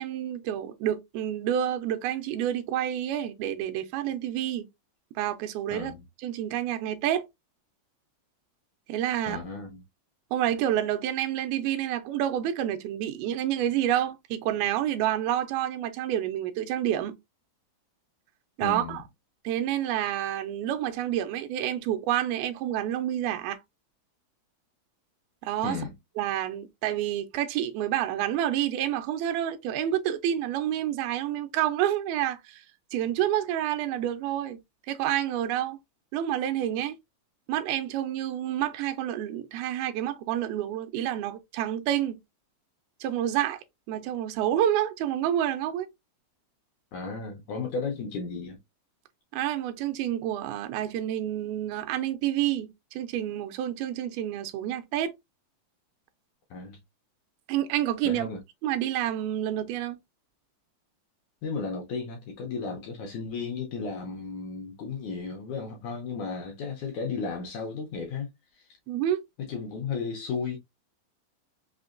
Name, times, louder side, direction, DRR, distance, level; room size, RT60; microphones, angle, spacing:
voice 1, 0.0-4.7 5.2-5.9 6.2-7.3 8.9-9.4 10.3-17.2 18.6-19.0 19.4-23.6 25.4-25.8 26.2-32.6 32.9-34.6 34.9-35.8 36.1-37.0 37.5-42.2 43.0-43.6 43.9-45.9 49.3-55.1 57.5-58.3 58.6-60.0 68.9-69.2, right 11 dB, 80° right, 2.4 m, -28 dB
voice 2, 5.7-6.0 9.3-9.8 18.6-19.0 25.6-25.9 46.9-48.6 56.5-56.8 58.1-58.4 61.4-68.3 68.6-68.7 69.4-70.6, left 4 dB, 80° left, 1.7 m, -34 dB
5.9 x 2.1 x 2.5 m
omnidirectional pair, 4.3 m